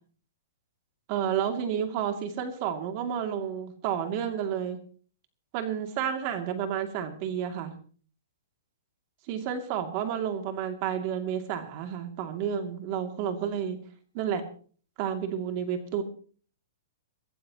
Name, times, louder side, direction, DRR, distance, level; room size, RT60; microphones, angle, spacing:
voice 1, 1.1-4.8 5.5-7.7 9.3-13.8 14.1-14.4 15.0-16.0, right 8 dB, 35° right, 5 dB, 2.5 m, -31 dB
23.5 x 15.0 x 3.0 m, 0.43 s
hypercardioid pair, 155°, 0 cm